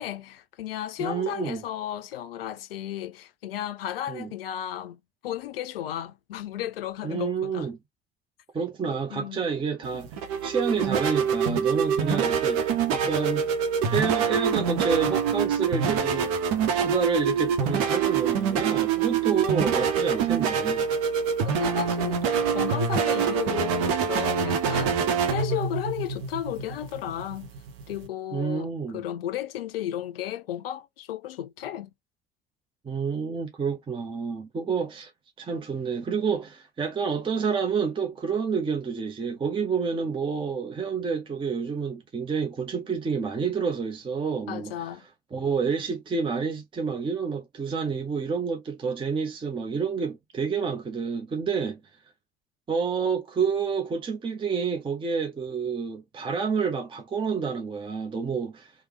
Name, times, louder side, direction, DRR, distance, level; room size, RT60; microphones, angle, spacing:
voice 1, 0.0-7.7 8.9-9.5 21.4-27.5 27.9-31.9 44.5-45.1, left 11 dB, 75° left, 0.4 m, -34 dB
voice 2, 1.0-1.6 4.1-4.3 7.0-7.7 8.5-10.1 10.4-13.4 13.9-16.3 16.7-20.9 28.3-29.0 32.8-35.1 35.4-44.7 45.3-51.8 52.7-58.7, right 5 dB, 15° right, 0.6 m, -29 dB
sound 1, 9.8-28.1, right 6 dB, 55° right, 0.8 m, -25 dB
3.2 x 2.0 x 2.9 m
figure-of-eight pair, 60°, 30 cm